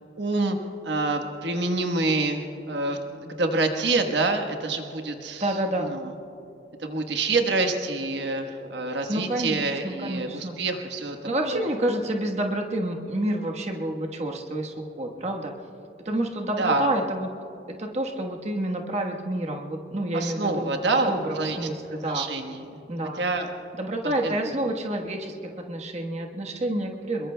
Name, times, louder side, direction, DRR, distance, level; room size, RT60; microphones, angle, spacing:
voice 1, 0.2-0.6 0.8-5.4 6.8-11.2 11.5-11.6 16.6-16.9 20.1-21.1 21.4-21.6 22.0-22.6 23.2-23.5 24.2-24.3, right 3 dB, 85° right, 4 dB, 1.3 m, -26 dB
voice 2, 5.4-5.9 9.1-10.6 11.2-15.5 16.0-17.3 17.7-22.2 22.9-23.2 23.7-25.3 25.7-27.3, right 1 dB, 40° right, 1 dB, 1.3 m, -29 dB
26.5 x 22.5 x 2.3 m, 2.8 s
head